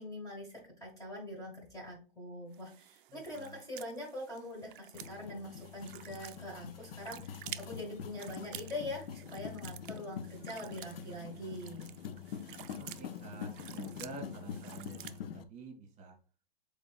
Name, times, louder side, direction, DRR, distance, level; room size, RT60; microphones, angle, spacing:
voice 1, 0.0-11.9, left 1 dB, 10° left, -2 dB, 1.4 m, -43 dB
sound 1, 2.5-15.2, right 13 dB, 65° right, 0.5 m, -51 dB
voice 2, 3.1-3.6 10.5-11.8 12.8-16.2, right 3 dB, 25° right, 2 dB, 1.9 m, -49 dB
sound 2, 4.9-15.4, left 7 dB, 75° left, 0.7 m, -45 dB
5.1 x 3.9 x 2.3 m, 0.37 s
hypercardioid pair, 125°, 29 cm